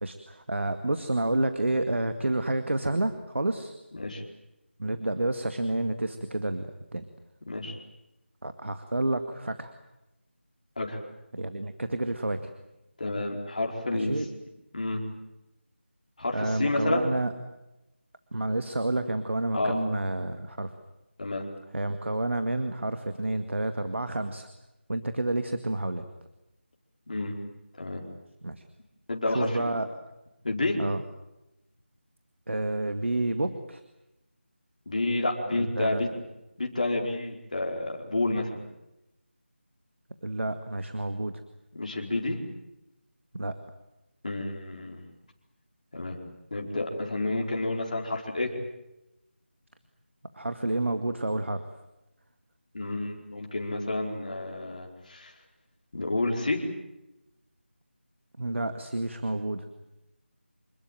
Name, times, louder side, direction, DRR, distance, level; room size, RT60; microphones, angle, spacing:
voice 1, 0.0-3.7 4.8-7.0 8.4-9.7 11.3-12.5 13.9-14.3 16.3-17.3 18.3-20.7 21.7-24.5 24.9-26.1 28.4-28.6 29.3-29.9 30.8-31.0 32.5-33.8 35.5-36.0 40.2-41.4 43.3-43.6 50.3-51.6 58.4-59.7, right 2 dB, 75° right, 8 dB, 2.1 m, -29 dB
voice 2, 13.0-14.1 14.7-15.0 16.2-17.1 19.5-19.8 21.2-21.4 27.1-27.3 27.8-28.0 29.1-29.7 30.4-30.8 34.9-36.1 36.6-38.6 41.7-42.4 44.2-45.0 45.9-46.2 46.5-48.5 52.7-55.3 55.9-56.6, left 2 dB, 40° left, 1 dB, 4.6 m, -30 dB
27.0 x 21.0 x 9.1 m, 0.94 s
figure-of-eight pair, 175°, 7 cm